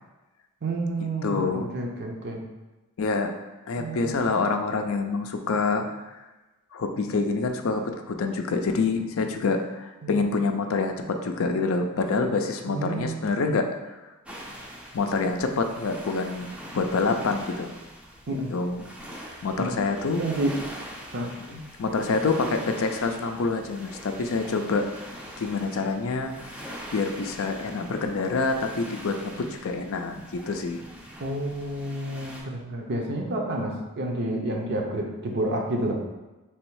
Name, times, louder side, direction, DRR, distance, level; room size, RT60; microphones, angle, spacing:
voice 1, 0.6-2.4 3.8-4.3 10.0-10.1 12.7-13.1 18.3-18.5 19.6-19.8 20.2-20.5 21.1-21.3 31.2-36.0, right 1 dB, 50° right, 1 dB, 0.6 m, -29 dB
voice 2, 1.2-1.7 3.0-3.3 3.7-5.9 6.7-13.7 14.9-17.7 18.5-18.9 19.4-20.3 21.5-25.0 25.4-26.4 26.9-30.8, left 4 dB, 60° left, 5 dB, 0.4 m, -26 dB
sound 1, 14.3-32.4, equal, 5° right, 0.5 m, -43 dB
3.4 x 3.0 x 4.6 m, 1.1 s
head